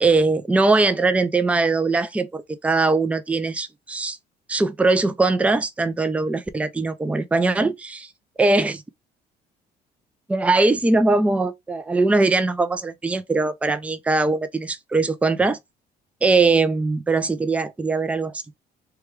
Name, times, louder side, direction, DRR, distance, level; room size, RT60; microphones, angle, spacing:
voice 1, 0.0-4.2 4.5-8.1 8.4-8.8 10.3-15.6 16.2-18.4, right 3 dB, 10° right, 0.4 m, -21 dB
3.1 x 2.3 x 3.2 m
cardioid pair, 110°, 17 cm